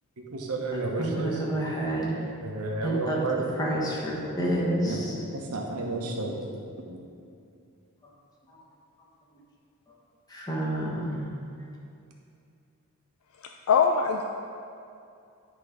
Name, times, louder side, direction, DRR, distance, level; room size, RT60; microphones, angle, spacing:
voice 1, 0.2-1.4 2.4-3.4 4.8-5.1 5.5-6.3 6.9-7.0, right 2 dB, 85° right, 0 dB, 1.1 m, -31 dB
voice 2, 1.0-2.1 2.8-3.2 3.6-5.1 10.3-11.3, right 1 dB, 15° left, -4 dB, 1.3 m, -29 dB
voice 3, 13.4-14.3, left 6 dB, 65° left, 3 dB, 0.4 m, -23 dB
10.5 x 3.7 x 5.1 m, 2.5 s
head